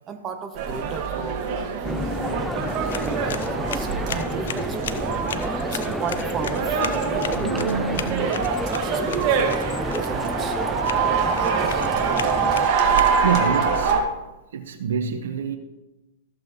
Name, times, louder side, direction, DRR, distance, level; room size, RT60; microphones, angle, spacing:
voice 1, 0.1-2.1 2.6-5.1 5.6-10.9 11.2-12.6, right 6 dB, 25° right, 5 dB, 1.0 m, -36 dB
sound 1, 0.6-14.0, right 5 dB, 45° right, 1.8 m, -24 dB
sound 2, 1.8-12.7, left 1 dB, ahead, 0.4 m, -31 dB
sound 3, 2.6-13.8, left 8 dB, 75° left, 0.7 m, -37 dB
voice 2, 7.3-8.3 13.2-14.0 14.5-15.6, right 7 dB, 75° right, 7 dB, 1.2 m, -27 dB
14.5 x 7.5 x 3.1 m, 1.0 s
hypercardioid pair, 120°, 0 cm